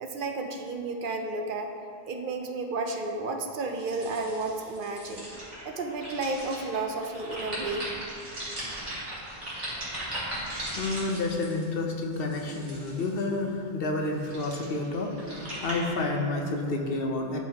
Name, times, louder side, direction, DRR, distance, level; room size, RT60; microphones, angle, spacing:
voice 1, 0.0-1.7 2.0-5.3 5.6-7.9, right 3 dB, 60° right, 4 dB, 0.7 m, -32 dB
sound 1, 3.7-13.4 14.0-16.0, right 1 dB, 45° right, 1.9 m, -38 dB
voice 2, 10.3-17.4, left 2 dB, 70° left, 2 dB, 0.9 m, -30 dB
11.0 x 4.1 x 2.9 m, 2.5 s
omnidirectional pair, 1.0 m